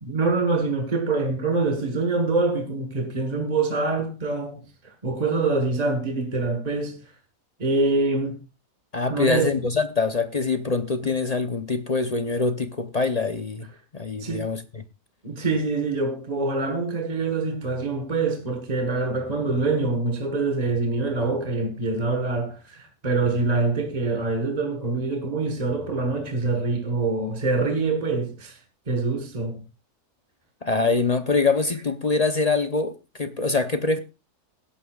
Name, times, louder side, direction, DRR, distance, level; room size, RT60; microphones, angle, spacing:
voice 1, 0.0-7.0 7.6-8.4 9.1-9.6 14.2-14.5 15.2-28.6 28.9-29.6, right 3 dB, 25° right, 1.5 m, -25 dB
voice 2, 8.9-13.7 13.9-14.8 30.6-34.0, left 3 dB, 40° left, 0.5 m, -24 dB
19.5 x 11.0 x 2.4 m
omnidirectional pair, 1.7 m